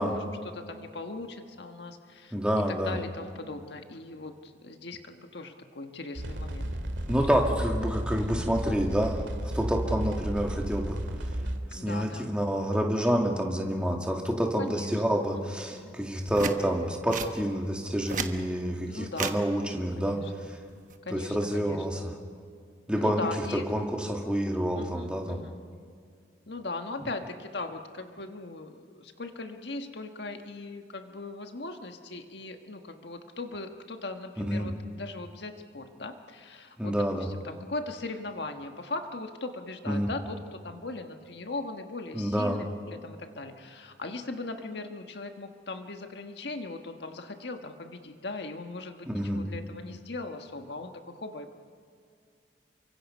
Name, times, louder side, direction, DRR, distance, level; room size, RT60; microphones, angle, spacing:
voice 1, 0.0-2.3 2.7-6.7 8.2-8.8 11.7-12.3 14.6-15.2 15.5-16.0 18.9-19.4 20.0-20.5 21.0-21.8 23.0-23.6 24.8-25.6 26.5-51.5, left 2 dB, 70° left, 5 dB, 1.5 m, -39 dB
voice 2, 2.3-3.0 7.1-9.2 9.5-11.0 11.7-20.6 21.1-22.1 22.9-25.4 34.4-34.7 36.8-37.3 39.9-40.1 42.1-42.6 49.1-49.4, equal, 5° right, 1 dB, 2.2 m, -28 dB
sound 1, 6.2-11.6, right 1 dB, 85° right, 2.2 m, -33 dB
sound 2, 16.3-16.6 17.1-17.3 17.9-18.3 19.1-19.4 20.7-20.9, right 5 dB, 45° right, 1.2 m, -32 dB
28.5 x 24.5 x 5.5 m, 2.2 s
head